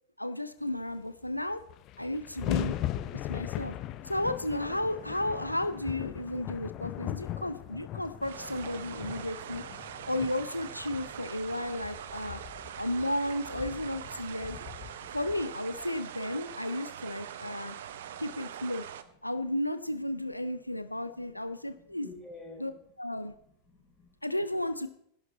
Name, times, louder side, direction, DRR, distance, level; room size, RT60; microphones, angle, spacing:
voice 1, 0.2-1.6 2.0-2.8 3.1-3.8 4.0-9.6 10.1-12.4 12.8-14.6 15.1-17.8 18.2-18.9 19.2-22.1 22.6-22.7 23.0-23.3 24.2-24.9, left 1 dB, 85° left, 11 dB, 0.5 m, -33 dB
sound 1, 1.2-1.3 1.5-15.9, left 13 dB, 35° left, 0.7 m, -39 dB
sound 2, 8.2-19.0, right 9 dB, 60° right, 0.9 m, -43 dB
voice 2, 17.3-18.5 19.2-19.3 20.1-20.3 20.6-20.7 21.1-22.7 23.3-24.2, left 2 dB, 15° left, 0 dB, 4.9 m, -53 dB
16.0 x 11.0 x 4.1 m, 0.71 s
figure-of-eight pair, 90°, 0 cm